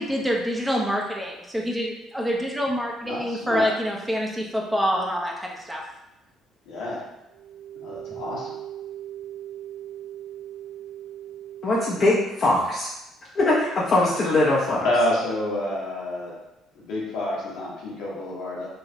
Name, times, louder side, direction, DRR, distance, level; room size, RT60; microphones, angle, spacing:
voice 1, 0.0-5.8, equal, 10° right, -1 dB, 0.6 m, -26 dB
voice 2, 3.0-3.7 6.7-7.0 7.8-8.5 14.8-16.4 16.7-18.7, left 1 dB, 65° left, -5 dB, 1.0 m, -28 dB
sound 1, 7.3-12.3, right 12 dB, 60° right, 0.3 m, -39 dB
voice 3, 11.6-12.9 13.4-14.9, left 2 dB, 45° left, -6 dB, 0.6 m, -21 dB
3.1 x 2.4 x 2.6 m, 0.92 s
hypercardioid pair, 55°, 0 cm